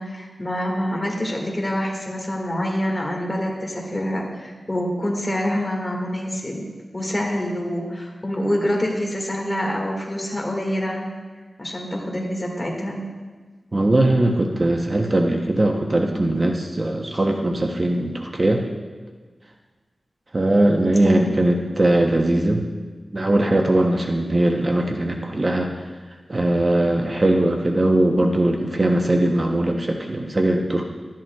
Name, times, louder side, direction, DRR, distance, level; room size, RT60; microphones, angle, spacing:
voice 1, 0.0-6.7 6.9-11.1 11.6-13.0 21.0-21.3, equal, 25° left, -1 dB, 1.8 m, -26 dB
voice 2, 13.7-18.6 20.3-22.6 23.1-25.7 26.3-30.9, right 1 dB, 35° right, 2 dB, 0.7 m, -20 dB
12.5 x 10.5 x 2.3 m, 1.4 s
wide cardioid pair, 90°, 0 cm